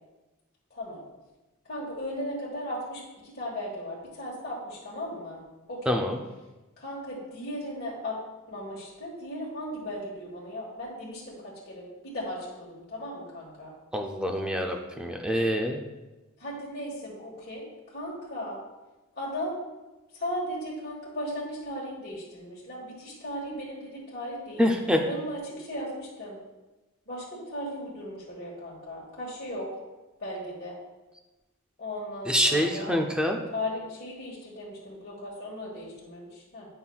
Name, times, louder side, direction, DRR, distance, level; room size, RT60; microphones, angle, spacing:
voice 1, 0.7-1.0 1.6-5.4 5.7-6.0 6.8-8.2 8.5-13.7 16.4-18.6 19.1-19.6 20.1-24.7 25.0-26.4 27.1-29.7 30.2-30.8 31.8-32.9 33.5-36.7, left 1 dB, 45° left, -6 dB, 1.4 m, -37 dB
voice 2, 5.9-6.2 13.9-15.8 24.6-25.0 32.3-33.4, equal, 5° right, 2 dB, 0.5 m, -25 dB
9.8 x 5.6 x 2.3 m, 1.1 s
head